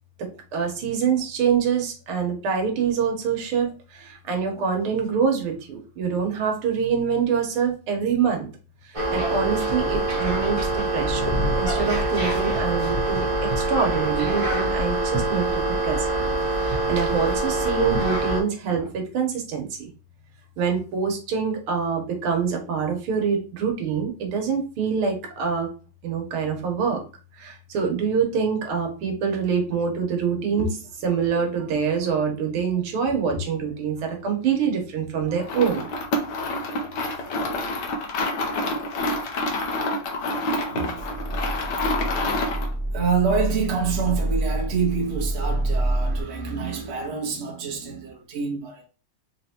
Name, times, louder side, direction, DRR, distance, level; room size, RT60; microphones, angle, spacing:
voice 1, 0.5-8.5 8.9-11.3 11.6-13.3 13.6-16.1 16.6-19.9 20.6-25.7 26.0-27.0 27.4-35.9 37.0-37.2 37.8-37.9, right 6 dB, 75° right, 1.8 m, -25 dB
sound 1, 8.9-18.4, right 2 dB, 20° right, 0.9 m, -24 dB
sound 2, 35.4-42.7, left 2 dB, 65° left, 1.2 m, -27 dB
voice 2, 40.5-41.0 41.9-42.2 42.9-48.8, right 5 dB, 55° right, 0.7 m, -27 dB
sound 3, 41.0-46.2, right 1 dB, 25° left, 1.3 m, -27 dB
4.0 x 3.3 x 2.8 m
omnidirectional pair, 2.4 m